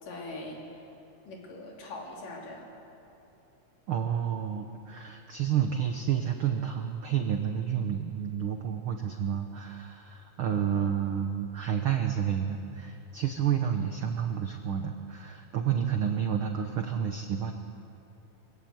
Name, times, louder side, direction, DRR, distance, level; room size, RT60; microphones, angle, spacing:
voice 1, 0.0-0.8 1.3-2.7, left 2 dB, 80° left, -1 dB, 4.7 m, -42 dB
voice 2, 3.9-17.5, right 8 dB, 75° right, 5 dB, 1.2 m, -30 dB
24.0 x 16.5 x 8.0 m, 3.0 s
omnidirectional pair, 3.7 m